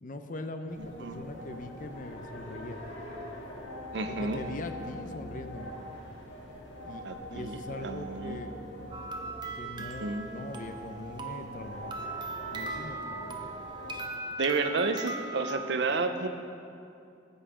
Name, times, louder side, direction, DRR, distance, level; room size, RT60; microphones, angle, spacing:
voice 1, 0.0-2.8 4.1-5.8 6.8-7.0 7.3-8.5 9.5-12.0 12.5-13.4, left 2 dB, 45° left, 7 dB, 0.6 m, -41 dB
sound 1, 0.7-14.0, equal, 80° left, 2.0 m, -43 dB
voice 2, 3.9-4.4 7.0-8.4 9.8-10.3 14.4-16.3, right 3 dB, 70° right, 8 dB, 0.6 m, -31 dB
sound 2, 8.9-15.5, right 3 dB, 25° right, 0.7 m, -39 dB
14.5 x 5.5 x 4.9 m, 2.5 s
head